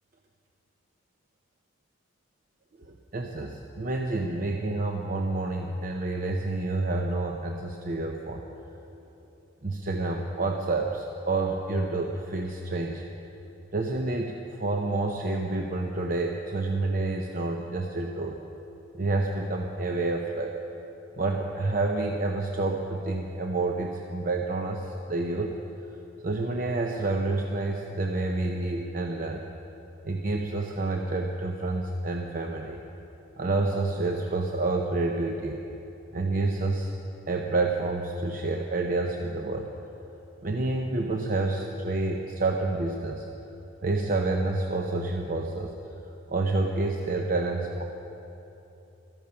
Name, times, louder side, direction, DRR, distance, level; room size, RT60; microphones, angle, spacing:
voice 1, 2.8-8.4 9.6-13.0 13.7-18.4 18.9-20.6 21.2-25.6 25.9-29.4 30.0-32.8 33.4-35.6 36.1-36.9 37.3-39.7 40.4-43.3 43.8-45.7 46.3-47.8, right 2 dB, 40° right, 2 dB, 0.7 m, -29 dB
14.0 x 14.0 x 5.7 m, 3.0 s
head